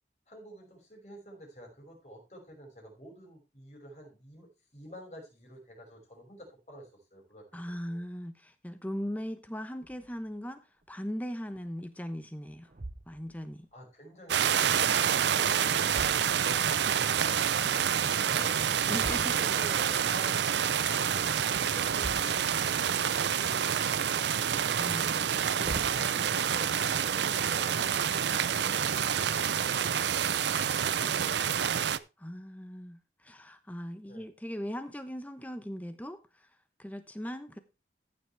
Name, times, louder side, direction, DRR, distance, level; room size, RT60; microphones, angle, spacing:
voice 1, 0.3-7.4 7.8-8.0 13.7-16.3 16.8-20.4 31.9-32.0 34.1-34.3, equal, 40° left, 5.7 m, -49 dB
voice 2, 7.5-12.7 13.1-13.7 15.2-15.5 18.8-19.3 24.8-25.3 31.0-31.3 32.2-36.5 36.8-37.6, equal, 10° left, 0.9 m, -39 dB
sound 1, 9.8-10.3 10.8-10.9 11.5-12.1 12.7-13.6 15.2-16.9 18.9-19.8 21.8-23.0 23.4-24.1 25.2-26.1, right 2 dB, 45° right, 0.7 m, -44 dB
sound 2, 14.3-32.0, right 8 dB, 75° right, 0.5 m, -28 dB
15.0 x 7.3 x 3.4 m
head